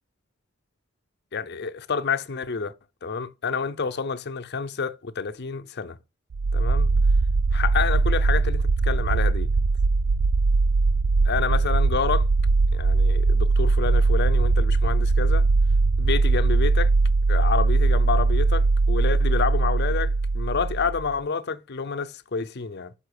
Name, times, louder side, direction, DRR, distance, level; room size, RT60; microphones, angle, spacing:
voice 1, 1.3-2.7 3.0-6.0 6.5-6.9 7.5-9.5 11.2-12.3 12.7-15.5 16.0-16.9 17.3-22.9, left 5 dB, 55° left, 0.6 m, -28 dB
sound 1, 6.3-21.1, right 3 dB, 50° right, 0.3 m, -21 dB
5.8 x 5.6 x 6.5 m
head